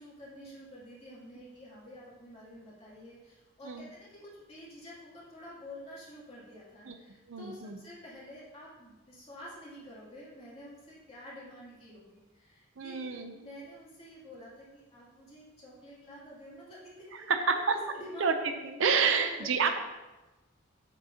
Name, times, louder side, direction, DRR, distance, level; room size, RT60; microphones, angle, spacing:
voice 1, 0.0-18.2 19.1-19.7, equal, 25° left, -7 dB, 2.7 m, -49 dB
voice 2, 7.3-7.8 12.8-13.3 17.3-17.6 18.2-18.3 18.8-19.8, right 5 dB, 60° right, 6 dB, 0.6 m, -28 dB
8.5 x 7.6 x 2.8 m, 1.1 s
head